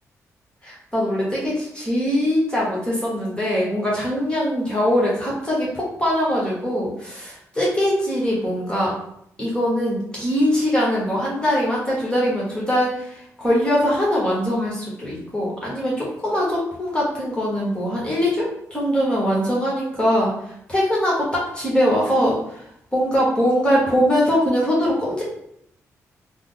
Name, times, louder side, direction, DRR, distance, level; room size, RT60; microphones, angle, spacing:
voice 1, 0.6-8.9 9.4-22.7 22.9-25.2, equal, 15° left, -5 dB, 1.2 m, -22 dB
3.4 x 2.0 x 3.8 m, 0.73 s
cardioid pair, 80°, 6 cm